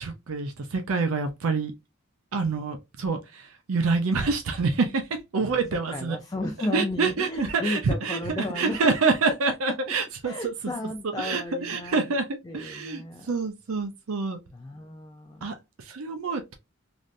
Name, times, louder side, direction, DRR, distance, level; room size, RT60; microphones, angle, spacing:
voice 1, 0.0-1.7 2.3-6.2 6.7-8.2 8.5-10.5 11.2-12.2 12.5-14.4 15.4-16.5, right 4 dB, 85° right, 0.5 m, -27 dB
voice 2, 5.9-9.3 9.7-9.8 10.2-12.2 12.4-13.3 14.5-15.6, left 2 dB, 20° left, 0.3 m, -34 dB
3.2 x 2.6 x 2.4 m
head